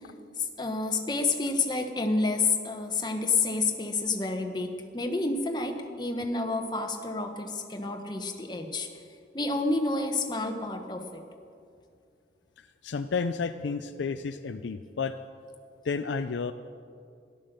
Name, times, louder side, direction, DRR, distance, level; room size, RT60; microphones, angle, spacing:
voice 1, 0.4-8.9 9.3-11.2, left 3 dB, 25° left, 4 dB, 1.1 m, -29 dB
voice 2, 12.6-15.1 15.8-16.5, left 5 dB, 80° left, 9 dB, 0.4 m, -31 dB
13.0 x 11.5 x 6.7 m, 2.4 s
head